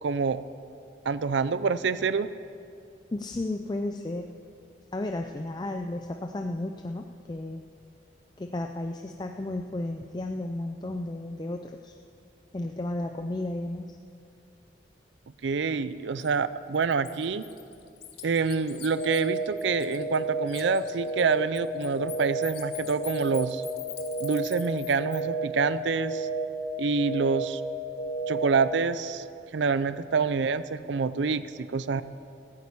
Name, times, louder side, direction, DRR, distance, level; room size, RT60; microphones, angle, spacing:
voice 1, 0.0-0.4 1.1-2.3 15.4-17.4 18.2-23.6 24.2-26.3 26.8-27.6 28.3-29.2 29.5-32.0, right 5 dB, 80° right, 15 dB, 0.5 m, -27 dB
voice 2, 3.1-4.3 4.9-7.6 8.4-12.0 12.5-14.0, left 2 dB, 25° left, 4 dB, 0.4 m, -33 dB
Bird, 16.2-16.3 16.7-20.2 20.5-25.2, left 12 dB, 55° left, 1.2 m, -44 dB
sound 1, 19.0-19.5 20.0-20.5 21.0-21.5 22.0-22.5 23.0-23.5 24.0-24.5 25.0-25.5 26.0-26.5 27.0-27.5 28.0-28.5, right 3 dB, 75° left, 3.4 m, -31 dB
14.5 x 8.6 x 8.4 m, 2.5 s
head